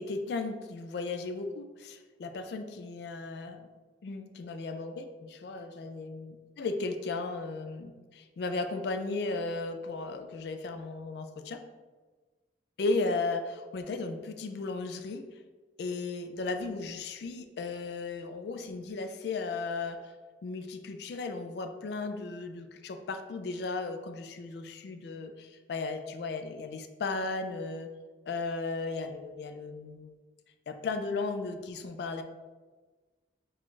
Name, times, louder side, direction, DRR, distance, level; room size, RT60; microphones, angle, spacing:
voice 1, 0.0-3.7 4.0-11.6 12.8-15.2 15.8-20.1 20.4-27.9 28.3-30.1 30.7-32.2, left 3 dB, 60° left, 7 dB, 0.3 m, -35 dB
4.8 x 2.4 x 3.7 m, 1.3 s
head